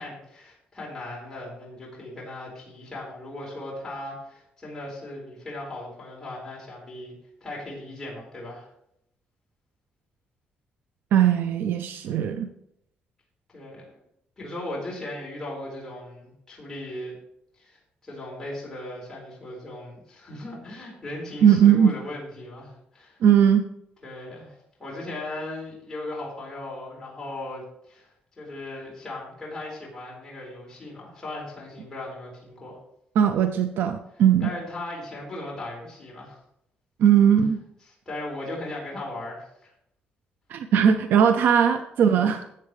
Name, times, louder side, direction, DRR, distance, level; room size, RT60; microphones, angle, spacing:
voice 1, 0.0-7.1 7.4-8.7 13.5-13.9 14.4-17.1 17.6-23.2 24.0-28.1 28.4-32.8 34.4-36.4 38.1-39.7, left 1 dB, 15° left, -5 dB, 4.3 m, -37 dB
voice 2, 11.1-12.5 21.4-21.9 23.2-23.6 33.2-34.5 37.0-37.6 40.5-42.4, right 8 dB, 75° right, 9 dB, 0.6 m, -19 dB
14.0 x 8.4 x 3.2 m, 0.76 s
cardioid pair, 130°, 3 cm